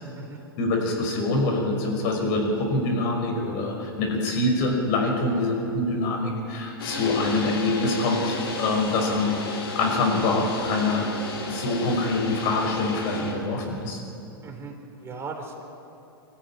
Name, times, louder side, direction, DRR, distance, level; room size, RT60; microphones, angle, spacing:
voice 1, 0.6-9.4 9.7-11.1 11.5-14.0, left 2 dB, 50° left, 2 dB, 5.6 m, -25 dB
sound 1, 6.8-13.3, left 2 dB, 75° left, 4.5 m, -33 dB
voice 2, 14.4-15.6, right 4 dB, 20° right, 1 dB, 4.6 m, -38 dB
24.0 x 14.5 x 10.0 m, 2.8 s
hypercardioid pair, 105°, 13 cm